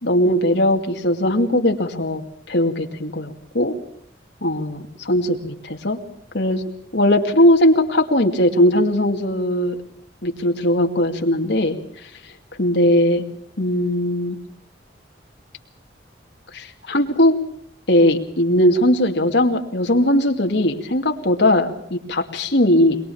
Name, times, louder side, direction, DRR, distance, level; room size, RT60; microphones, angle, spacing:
voice 1, 0.0-2.2 2.5-3.8 4.4-6.0 6.3-6.6 6.9-9.8 10.2-11.8 12.6-13.2 13.6-14.4 16.5-17.4 17.9-23.0, left 1 dB, 65° left, 4 dB, 2.4 m, -19 dB
22.5 x 21.5 x 7.2 m, 0.67 s
head